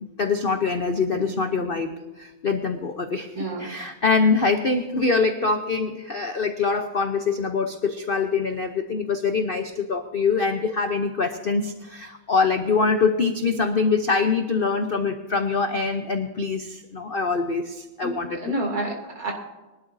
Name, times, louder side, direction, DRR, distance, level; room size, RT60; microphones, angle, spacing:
voice 1, 0.0-18.5, left 4 dB, 45° left, 6 dB, 0.7 m, -24 dB
voice 2, 1.1-1.7 3.3-3.7 18.0-19.3, right 1 dB, 50° right, 0 dB, 3.2 m, -30 dB
22.0 x 12.0 x 2.7 m, 1.2 s
omnidirectional pair, 2.0 m